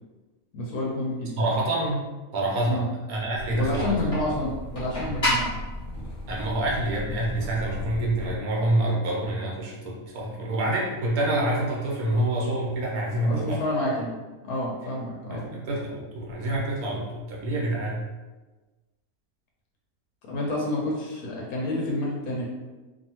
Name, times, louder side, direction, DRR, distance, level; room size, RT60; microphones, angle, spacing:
voice 1, 0.5-1.3 2.7-2.9 3.5-5.5 13.3-14.1 14.4-15.5 20.2-22.5, left 1 dB, 90° left, -3 dB, 1.2 m, -29 dB
voice 2, 1.4-2.1 2.3-4.1 6.3-13.6 15.3-18.1, right 1 dB, 90° right, -3 dB, 1.2 m, -27 dB
sound 1, 3.4-8.4, left 1 dB, 25° left, 1.0 m, -32 dB
2.7 x 2.6 x 2.8 m, 1.2 s
omnidirectional pair, 1.5 m